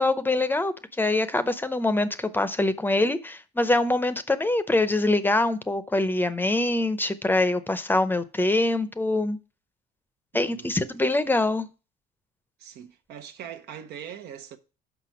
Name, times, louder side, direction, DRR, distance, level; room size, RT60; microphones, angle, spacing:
voice 1, 0.0-9.4 10.3-11.7, left 2 dB, 10° left, 0.6 m, -24 dB
voice 2, 10.3-10.8 12.6-14.6, right 9 dB, 75° right, 0.9 m, -41 dB
6.0 x 5.5 x 6.0 m
cardioid pair, 110°, 17 cm